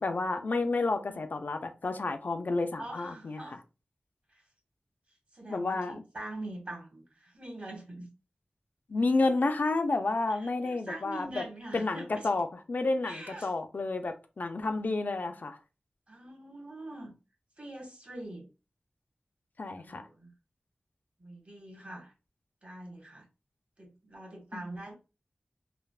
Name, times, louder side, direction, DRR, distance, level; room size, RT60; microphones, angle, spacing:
voice 1, 0.0-3.6 5.5-6.0 8.9-11.4 11.7-15.6 19.6-20.1 24.5-24.6, left 3 dB, 60° left, 7 dB, 0.3 m, -30 dB
voice 2, 2.8-3.6 4.3-4.4 5.3-8.1 10.3-12.3 13.0-13.5 16.1-17.1 17.6-18.5 19.8-20.3 21.2-22.1 22.6-23.2 23.8-24.9, right 1 dB, 45° right, 0 dB, 1.2 m, -43 dB
3.3 x 2.0 x 2.3 m, 0.30 s
wide cardioid pair, 80°, 3 cm